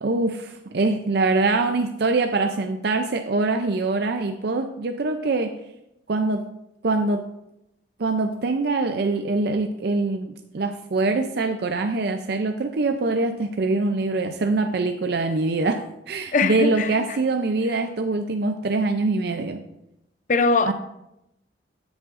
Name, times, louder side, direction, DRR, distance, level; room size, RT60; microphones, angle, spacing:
voice 1, 0.0-5.5 6.1-6.4 6.8-7.2 8.0-15.8 16.1-19.6 20.7-20.8, right 3 dB, 60° right, 0.5 m, -24 dB
voice 2, 16.3-17.0 20.3-20.7, left 4 dB, 45° left, 0.5 m, -21 dB
13.0 x 7.3 x 2.5 m
head